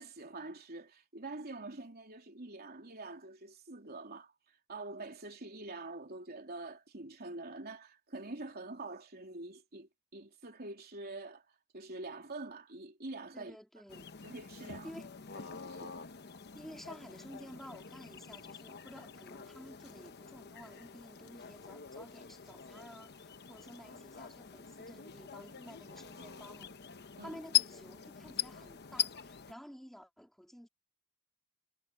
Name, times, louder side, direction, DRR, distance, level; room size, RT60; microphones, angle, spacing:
voice 1, 0.0-4.3 4.7-11.4 11.7-13.6 14.2-14.9 15.4-16.0 27.2-27.4, right 2 dB, 45° right, 3.3 m, -45 dB
voice 2, 13.3-14.1 14.8-15.1 16.5-26.7 27.2-30.7, equal, ahead, 3.3 m, -52 dB
sound 1, 13.9-29.5, left 10 dB, 50° left, 1.0 m, -42 dB
head